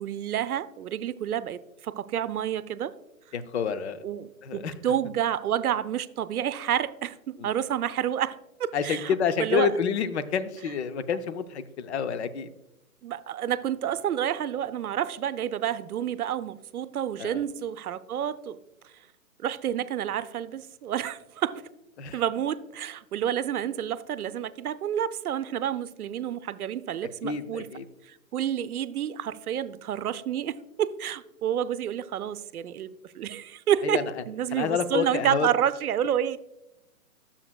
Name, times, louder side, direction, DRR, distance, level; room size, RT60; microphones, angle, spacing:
voice 1, 0.0-2.9 4.0-9.1 9.4-9.7 13.0-18.6 18.8-18.9 19.4-21.6 22.1-27.7 28.1-36.4, right 10 dB, 85° right, 0.6 m, -29 dB
voice 2, 3.3-4.0 4.4-4.7 7.4-7.5 8.7-12.5 17.2-17.4 22.0-22.2 27.2-27.9 33.8-34.0 34.5-35.5, left 7 dB, 50° left, 0.6 m, -28 dB
11.0 x 7.1 x 2.3 m
hypercardioid pair, 165°, 43 cm